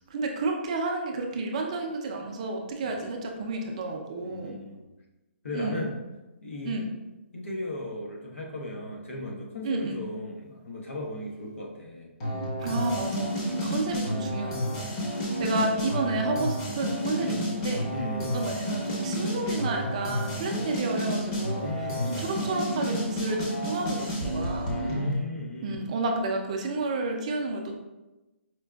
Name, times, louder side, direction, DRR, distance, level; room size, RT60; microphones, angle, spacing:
voice 1, 0.1-4.6 5.5-5.9 6.6-6.9 9.6-10.0 12.6-15.1 15.4-17.9 18.3-21.7 22.1-24.8 25.6-27.7, right 3 dB, 30° right, 2 dB, 0.4 m, -31 dB
voice 2, 4.2-4.8 5.4-6.0 6.4-6.8 7.3-12.1 13.5-13.8 14.9-15.1 15.5-15.7 17.2-17.5 17.9-18.5 21.6-22.4 24.7-25.9, left 1 dB, 90° left, -1 dB, 0.9 m, -36 dB
sound 1, 12.2-25.1, equal, 25° left, 0.6 m, -30 dB
4.4 x 2.4 x 2.2 m, 1.1 s
hypercardioid pair, 165°, 7 cm